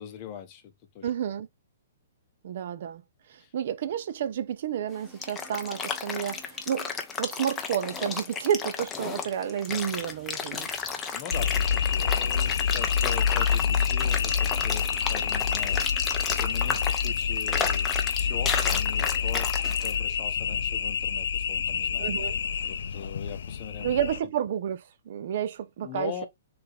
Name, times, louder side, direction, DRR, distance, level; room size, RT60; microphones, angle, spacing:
voice 1, 0.0-1.1 3.4-3.5 11.1-24.1 25.8-26.3, left 8 dB, 25° left, 0.9 m, -41 dB
voice 2, 1.0-1.5 2.4-3.0 3.3-10.7 22.0-22.4 23.8-26.3, right 9 dB, 50° right, 0.4 m, -30 dB
sound 1, 4.9-19.9, left 5 dB, 10° left, 0.6 m, -32 dB
sound 2, 11.3-24.2, left 7 dB, 70° left, 0.4 m, -27 dB
4.5 x 3.4 x 3.4 m
hypercardioid pair, 165°, 0 cm